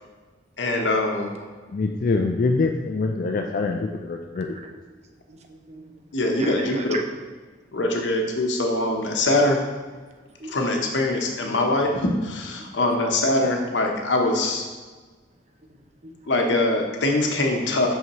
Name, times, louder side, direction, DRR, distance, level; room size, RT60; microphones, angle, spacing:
voice 1, 0.6-1.3 6.1-7.0 7.7-9.6 10.5-14.7 16.3-17.9, left 2 dB, 80° left, 1 dB, 0.9 m, -23 dB
voice 2, 1.7-4.5, left 3 dB, 50° left, 3 dB, 0.4 m, -24 dB
voice 3, 5.3-6.0 6.3-7.0 10.4-10.8 12.6-12.7 15.7-16.1, right 2 dB, 35° right, 3 dB, 0.6 m, -36 dB
5.8 x 5.5 x 3.0 m, 1.4 s
head